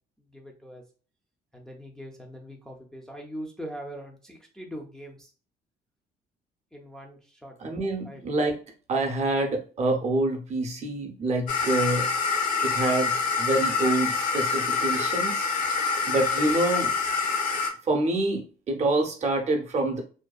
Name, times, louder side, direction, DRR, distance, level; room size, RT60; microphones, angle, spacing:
voice 1, 0.2-0.8 1.5-5.3 6.7-7.5 8.0-8.3, equal, 5° left, 0 dB, 0.4 m, -41 dB
voice 2, 7.6-8.6 8.9-12.1 12.6-15.5 16.1-16.9 17.8-20.0, right 2 dB, 40° right, 2 dB, 0.6 m, -26 dB
sound 1, 11.5-17.7, left 4 dB, 55° left, 0.7 m, -26 dB
2.6 x 2.2 x 2.3 m, 0.39 s
cardioid pair, 110°, 17 cm